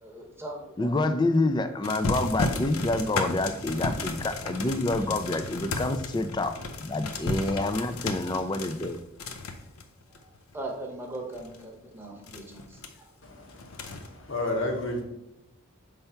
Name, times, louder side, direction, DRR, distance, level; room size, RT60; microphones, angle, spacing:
voice 1, 0.0-0.9 10.1-13.1, right 2 dB, 10° right, 0 dB, 0.9 m, -40 dB
voice 2, 0.8-6.5 6.8-9.0, left 2 dB, 20° left, 9 dB, 0.3 m, -27 dB
sound 1, 1.8-10.7 11.2-11.6 12.3-12.9 13.5-14.1, left 3 dB, 85° left, 0.7 m, -34 dB
voice 3, 13.2-15.0, left 2 dB, 60° left, 1 dB, 1.3 m, -32 dB
5.6 x 3.4 x 5.6 m, 0.86 s
head